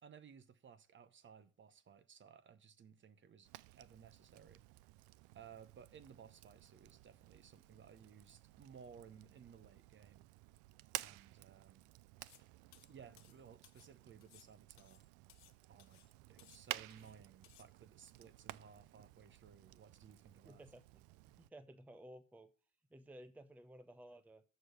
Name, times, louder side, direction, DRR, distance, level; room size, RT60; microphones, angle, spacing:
voice 1, 0.0-4.6 5.3-10.2 11.0-11.9 12.9-15.0 15.7-16.0 16.3-20.6, right 7 dB, 30° right, 0.9 m, -59 dB
Fire, 3.4-21.5, right 18 dB, 55° right, 0.5 m, -53 dB
sound 1, 12.2-12.5 12.7-13.9 14.2-15.5 15.8-16.1 16.4-17.1 17.4-17.7, left 14 dB, 70° left, 0.9 m, -65 dB
voice 2, 20.4-21.0 21.4-22.5 22.9-24.4, right 1 dB, 5° right, 0.7 m, -56 dB
6.6 x 6.3 x 6.7 m
hypercardioid pair, 70°, 38 cm